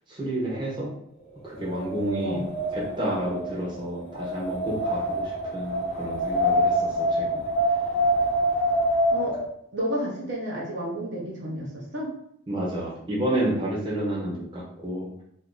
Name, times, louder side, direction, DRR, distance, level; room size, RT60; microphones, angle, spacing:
voice 1, 0.1-1.0 1.4-2.5 2.7-7.5 12.5-15.2, right 1 dB, 25° right, -5 dB, 0.9 m, -30 dB
Wind, 1.5-9.5, equal, 40° left, 0.7 m, -26 dB
voice 2, 9.7-12.1, right 1 dB, 55° right, -4 dB, 0.8 m, -31 dB
2.6 x 2.6 x 3.7 m, 0.72 s
head